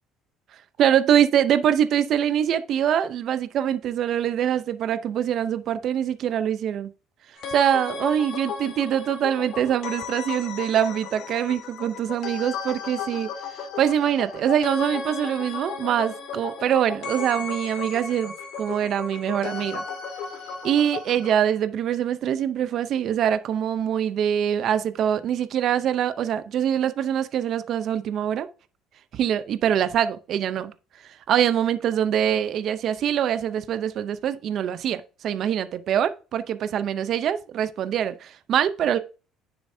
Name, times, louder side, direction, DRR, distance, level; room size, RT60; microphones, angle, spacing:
voice 1, 0.8-6.9 7.5-13.3 13.8-19.8 20.6-28.5 29.1-30.7 31.3-39.0, right 9 dB, 50° right, 0.6 m, -24 dB
sound 1, 7.4-21.3, left 5 dB, 70° left, 1.9 m, -35 dB
9.7 x 7.0 x 2.7 m
cardioid pair, 125°, 0 cm